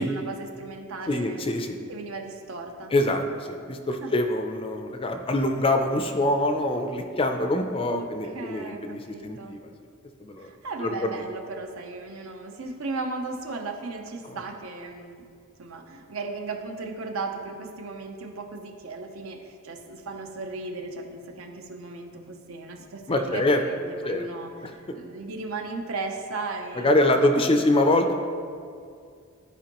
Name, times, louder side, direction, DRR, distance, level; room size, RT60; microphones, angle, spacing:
voice 1, 0.0-1.4 1.9-2.9 4.0-4.1 7.9-9.6 10.4-15.2 15.6-27.6, right 3 dB, 65° right, 3 dB, 0.7 m, -36 dB
voice 2, 1.1-1.8 2.9-9.7 10.2-10.5 10.8-11.2 14.2-14.4 23.1-23.6 24.0-24.3 24.6-24.7 26.7-28.1, left 1 dB, 25° left, 5 dB, 0.4 m, -24 dB
11.5 x 4.4 x 3.0 m, 2.3 s
head